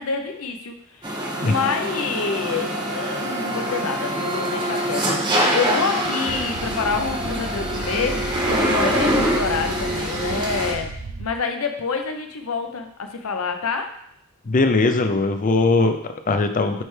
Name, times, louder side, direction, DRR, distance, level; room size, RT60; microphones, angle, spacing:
voice 1, 0.0-10.9 11.2-13.9, left 5 dB, 70° left, 6 dB, 0.7 m, -27 dB
sound 1, 1.0-10.7, right 1 dB, 20° right, 1.0 m, -24 dB
sound 2, 6.3-11.3, right 2 dB, 70° right, 0.7 m, -34 dB
voice 2, 14.5-16.8, left 3 dB, 35° left, 8 dB, 0.5 m, -20 dB
8.9 x 3.3 x 3.3 m, 0.72 s
head